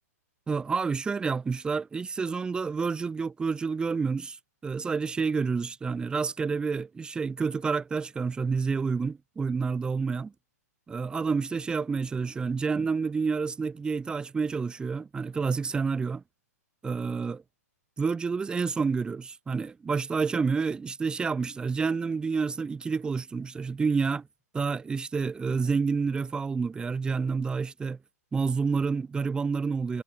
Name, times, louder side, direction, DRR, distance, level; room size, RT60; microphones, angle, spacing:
voice 1, 0.5-4.4 4.6-10.3 10.9-16.2 16.8-17.4 18.0-24.3 24.5-28.0 28.3-30.0, right 5 dB, 10° right, 0.7 m, -29 dB
figure-of-eight pair, 115°, 9 cm